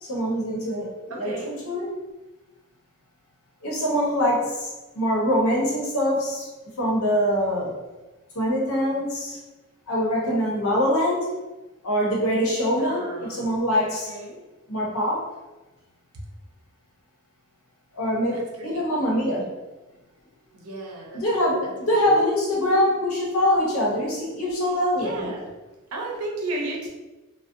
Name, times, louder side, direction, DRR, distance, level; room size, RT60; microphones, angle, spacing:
voice 1, 0.0-1.4 1.6-1.9 3.6-4.7 4.9-6.5 6.8-7.7 8.3-9.4 9.9-11.3 11.8-14.1 14.7-15.3 18.0-19.5 21.1-25.2, equal, 85° left, -4 dB, 0.8 m, -24 dB
voice 2, 1.1-1.6 12.8-13.5 13.9-14.4 18.3-18.8 20.5-22.1 25.0-25.5 25.9-26.9, right 2 dB, 85° right, -1 dB, 0.6 m, -34 dB
2.5 x 2.0 x 2.5 m, 1.1 s
head